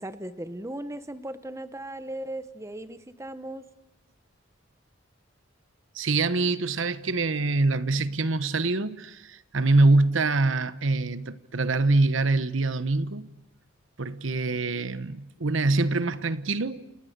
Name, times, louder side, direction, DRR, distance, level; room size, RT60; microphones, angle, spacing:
voice 1, 0.0-3.6, right 1 dB, 15° right, 1.1 m, -37 dB
voice 2, 5.9-13.3 14.0-16.8, right 2 dB, 70° right, 1.1 m, -24 dB
30.0 x 28.5 x 6.7 m
head